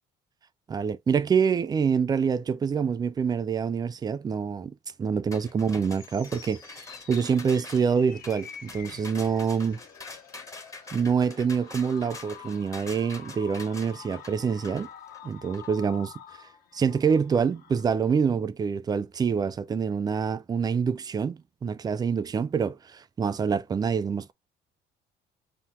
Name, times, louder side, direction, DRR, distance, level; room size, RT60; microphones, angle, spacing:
voice 1, 0.7-9.8 10.9-14.9 15.2-16.1 16.7-24.3, right 6 dB, 25° right, 0.4 m, -26 dB
sound 1, 5.3-15.7, left 3 dB, 20° left, 0.7 m, -45 dB
sound 2, 5.5-17.9, left 8 dB, 60° left, 0.8 m, -48 dB
5.6 x 2.2 x 2.8 m
cardioid pair, 110°, 17 cm